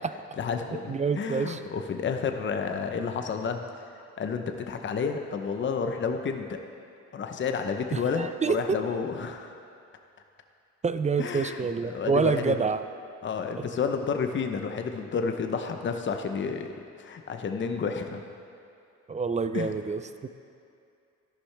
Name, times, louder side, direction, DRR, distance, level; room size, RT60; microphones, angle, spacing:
voice 1, 0.4-3.6 3.9-6.6 7.1-9.5 11.2-12.7 13.2-18.3 19.5-19.7, left 5 dB, 40° left, 5 dB, 0.8 m, -31 dB
voice 2, 0.9-1.6 7.9-8.8 10.8-12.8 19.1-20.3, right 5 dB, 25° right, 11 dB, 0.4 m, -27 dB
13.0 x 11.5 x 3.4 m, 2.6 s
cardioid pair, 90°, 30 cm